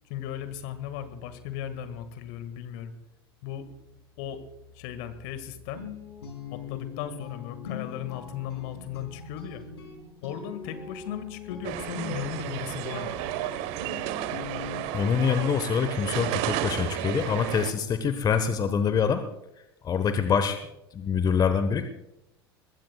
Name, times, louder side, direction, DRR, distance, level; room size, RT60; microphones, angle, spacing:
voice 1, 0.1-2.9 3.4-3.7 4.2-4.4 4.7-5.8 6.5-9.6 10.2-13.3, left 9 dB, 55° left, 11 dB, 1.8 m, -36 dB
Guitar, 5.8-14.8, left 7 dB, 75° left, 3.8 m, -41 dB
sound 1, 11.6-17.7, right 13 dB, 50° right, 1.1 m, -32 dB
voice 2, 14.9-19.2 19.8-20.6 20.9-21.9, left 6 dB, 30° left, 10 dB, 1.1 m, -25 dB
23.0 x 20.5 x 2.3 m, 0.86 s
figure-of-eight pair, 75°, 13 cm